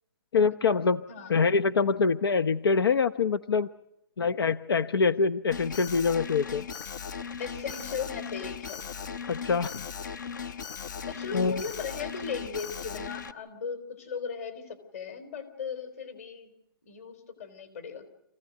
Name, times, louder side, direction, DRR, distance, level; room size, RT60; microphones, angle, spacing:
voice 1, 0.3-1.0 1.3-3.7 4.2-6.7 9.3-9.9 11.3-11.6, left 5 dB, 85° left, 13 dB, 0.8 m, -25 dB
Alarm, 5.5-13.3, left 6 dB, 55° left, 1.0 m, -38 dB
voice 2, 7.4-8.8 11.1-16.5 16.8-18.1, left 6 dB, 40° left, 10 dB, 3.8 m, -37 dB
26.0 x 16.0 x 9.2 m, 0.84 s
hypercardioid pair, 170°, 12 cm